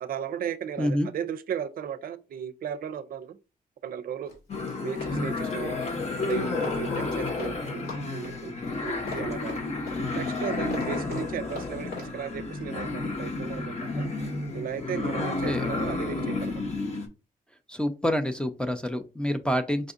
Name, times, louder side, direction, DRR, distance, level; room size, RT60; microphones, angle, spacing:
voice 1, 0.0-3.4 3.8-4.3 4.8-5.8 6.3-8.6 8.8-9.6 10.1-14.0 14.5-16.6, right 8 dB, 70° right, 0.5 m, -35 dB
voice 2, 0.8-1.1 15.4-15.7 17.7-19.9, equal, 5° left, 0.5 m, -27 dB
Run, 4.3-7.6 7.8-12.1, left 3 dB, 85° left, 1.9 m, -41 dB
sound 1, 4.5-17.1, left 3 dB, 45° left, 0.9 m, -31 dB
5.0 x 2.6 x 2.5 m
cardioid pair, 110°, 15 cm